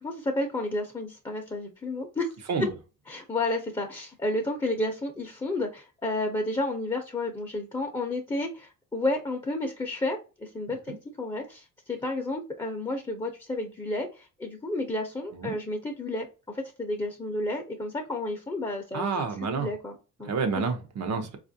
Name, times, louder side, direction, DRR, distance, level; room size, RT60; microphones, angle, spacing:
voice 1, 0.0-2.3 3.1-19.3 19.6-20.3, left 2 dB, 15° left, 0.7 m, -31 dB
voice 2, 18.9-19.7 20.2-21.4, right 5 dB, 60° right, 0.8 m, -29 dB
4.2 x 2.4 x 2.6 m
cardioid pair, 90°, 30 cm